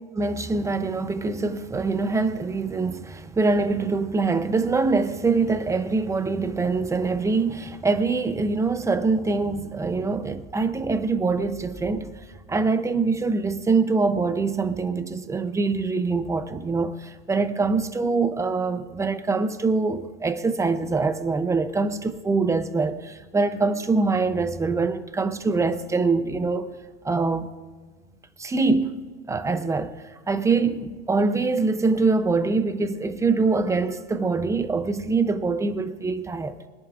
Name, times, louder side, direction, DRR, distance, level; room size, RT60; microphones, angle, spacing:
voice 1, 0.1-26.7 27.0-27.6 28.4-36.6, right 3 dB, 10° right, 0.5 m, -24 dB
24.0 x 11.0 x 2.4 m
supercardioid pair, 135°, 32 cm